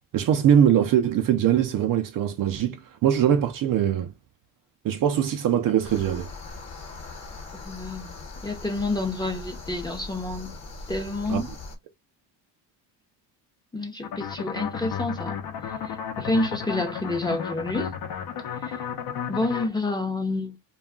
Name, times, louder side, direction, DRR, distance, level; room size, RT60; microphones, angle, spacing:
voice 1, 0.1-4.1 4.8-6.3 11.3-11.4, right 9 dB, 50° right, 0.5 m, -22 dB
sound 1, 5.8-11.8, left 3 dB, 35° left, 1.1 m, -40 dB
voice 2, 7.6-8.1 8.4-10.5 10.9-11.5 13.7-15.4 15.8-18.0 18.6-18.8 19.3-20.6, left 2 dB, 10° left, 0.7 m, -29 dB
sound 2, 14.0-19.7, left 8 dB, 55° left, 0.8 m, -33 dB
2.3 x 2.2 x 3.6 m
cardioid pair, 95°, 45 cm